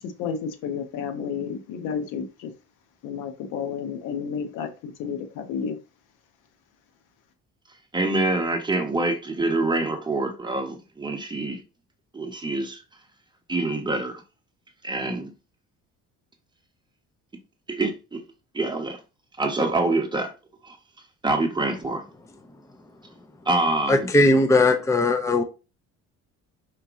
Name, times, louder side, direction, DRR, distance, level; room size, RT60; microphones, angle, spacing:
voice 1, 0.0-2.5 3.0-5.8, left 6 dB, 85° left, 1.0 m, -31 dB
voice 2, 7.9-11.6 12.1-12.8 13.5-14.2 14.8-15.3 17.7-18.2 18.5-19.0 19.4-20.3 20.6-20.8 21.2-22.0 23.5-24.1, right 2 dB, 15° right, 1.0 m, -25 dB
voice 3, 23.9-25.4, left 2 dB, 10° left, 0.6 m, -19 dB
5.0 x 2.8 x 3.6 m
cardioid pair, 115°, 30 cm